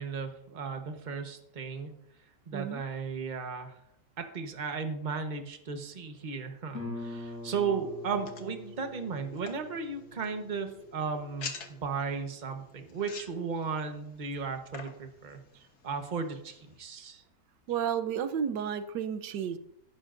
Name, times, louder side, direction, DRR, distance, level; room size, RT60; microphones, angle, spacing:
voice 1, 0.0-1.9 2.5-3.7 4.2-15.4 15.8-17.2, right 5 dB, 30° right, 5 dB, 1.1 m, -35 dB
voice 2, 2.5-2.8 17.0-17.1 17.7-19.6, right 8 dB, 90° right, 10 dB, 1.4 m, -32 dB
Guitar, 6.7-12.2, left 2 dB, 45° left, 5.7 m, -44 dB
sound 1, 7.0-16.8, left 5 dB, 70° left, 1.8 m, -49 dB
17.5 x 11.0 x 2.6 m, 0.75 s
omnidirectional pair, 1.8 m